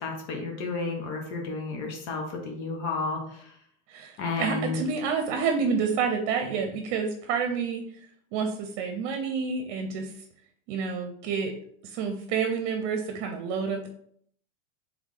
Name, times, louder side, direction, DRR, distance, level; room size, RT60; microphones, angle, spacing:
voice 1, 0.0-3.5 4.2-4.8, left 4 dB, 65° left, 2 dB, 1.2 m, -32 dB
voice 2, 3.9-7.8 8.3-10.1 10.7-11.5 11.8-13.9, right 5 dB, 55° right, 5 dB, 0.7 m, -29 dB
3.4 x 3.1 x 3.8 m, 0.64 s
supercardioid pair, 130°, 36 cm